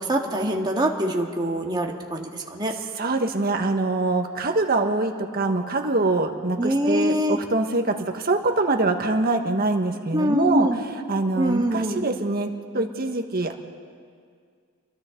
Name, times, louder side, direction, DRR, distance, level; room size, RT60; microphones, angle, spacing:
voice 1, 0.0-2.7 6.6-7.4 10.1-10.8 11.4-12.1, right 1 dB, 20° right, 1 dB, 1.9 m, -24 dB
voice 2, 3.0-13.5, right 2 dB, 45° right, 4 dB, 1.6 m, -24 dB
29.5 x 23.0 x 3.9 m, 2.1 s
head